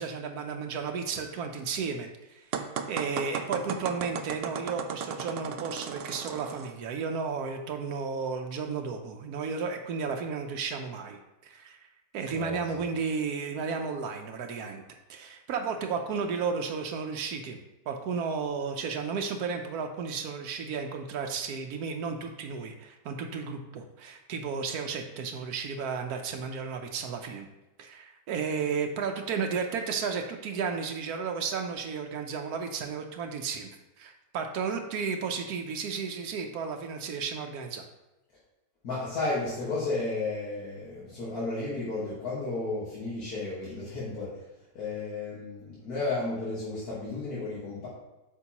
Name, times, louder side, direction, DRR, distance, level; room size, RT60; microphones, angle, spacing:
voice 1, 0.0-2.5 2.9-11.8 12.1-14.8 15.1-17.6 17.9-27.5 27.8-33.7 34.0-37.8, right 5 dB, 90° right, 4 dB, 1.2 m, -33 dB
sound 1, 2.5-6.7, right 7 dB, 70° right, 0.5 m, -35 dB
voice 2, 12.3-12.9 38.8-44.4 44.7-47.9, left 3 dB, 85° left, -8 dB, 2.1 m, -33 dB
8.1 x 5.4 x 2.9 m, 1.0 s
omnidirectional pair, 1.6 m